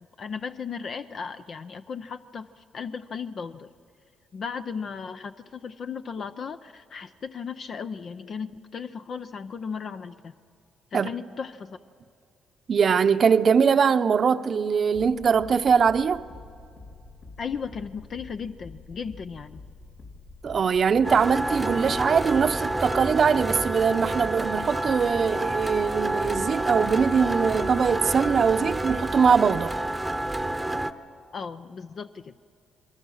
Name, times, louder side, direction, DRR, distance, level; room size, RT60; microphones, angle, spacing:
voice 1, 0.2-3.7 4.3-10.3 10.9-11.8 17.4-19.6 31.3-32.3, left 6 dB, 50° left, 0.6 m, -36 dB
voice 2, 12.7-16.2 20.4-29.8, right 6 dB, 50° right, 0.7 m, -22 dB
sound 1, 14.9-22.3, left 3 dB, 75° left, 3.6 m, -47 dB
sound 2, 21.0-30.9, right 1 dB, 10° right, 0.9 m, -29 dB
27.5 x 22.0 x 6.4 m
cardioid pair, 90°, 0 cm